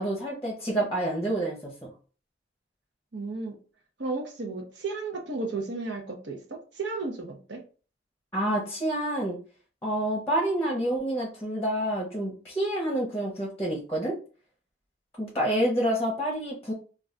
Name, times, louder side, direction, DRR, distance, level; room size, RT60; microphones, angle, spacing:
voice 1, 0.0-1.9 8.3-9.4 9.8-14.1 15.2-16.7, right 1 dB, 10° left, 0.7 m, -28 dB
voice 2, 3.1-3.6 4.0-7.6, right 3 dB, 65° right, 0.7 m, -34 dB
2.3 x 2.2 x 3.7 m
head